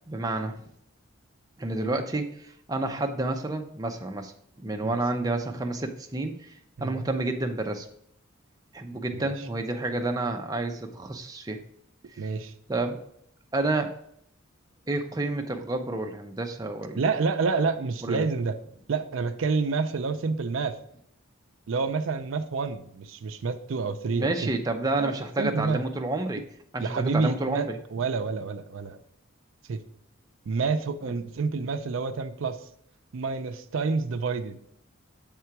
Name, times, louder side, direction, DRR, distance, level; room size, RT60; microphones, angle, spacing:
voice 1, 0.1-0.7 1.6-4.3 4.6-7.9 8.7-11.6 12.1-12.3 12.7-13.0 13.5-13.9 14.9-17.0 18.0-18.3 24.1-26.4 26.7-27.8 31.0-31.1, right 2 dB, 20° right, 4 dB, 0.5 m, -30 dB
voice 2, 12.2-12.5 17.0-18.5 18.9-20.8 21.7-24.5 25.0-25.8 26.8-29.0 29.7-29.8 30.5-32.6 33.1-34.6, right 4 dB, 70° right, 8 dB, 0.5 m, -28 dB
7.0 x 3.7 x 4.5 m, 0.70 s
head